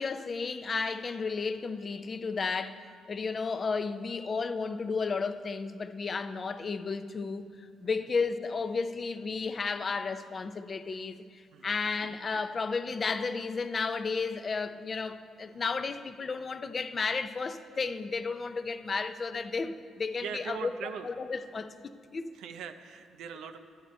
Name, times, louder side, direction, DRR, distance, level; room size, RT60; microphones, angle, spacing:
voice 1, 0.0-7.5 7.8-20.7 21.0-22.4, left 4 dB, 30° left, 0.4 m, -33 dB
voice 2, 20.2-21.1 22.3-23.6, right 7 dB, 80° right, 0.5 m, -41 dB
11.5 x 8.1 x 4.2 m
cardioid pair, 125°, 0 cm